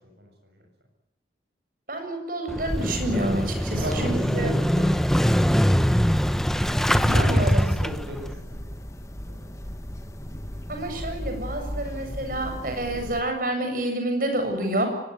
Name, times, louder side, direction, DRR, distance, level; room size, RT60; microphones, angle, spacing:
voice 1, 1.9-4.6 6.9-7.8 10.7-14.9, right 1 dB, 50° right, 5 dB, 7.5 m, -28 dB
Motorcycle / Engine starting, 2.5-8.3, equal, ahead, 0.8 m, -22 dB
sound 1, 2.7-13.2, equal, 20° left, 1.5 m, -37 dB
voice 2, 3.7-5.4 7.1-8.8 9.3-9.5, equal, 70° right, 3 dB, 7.7 m, -35 dB
23.5 x 19.5 x 9.6 m, 0.88 s
head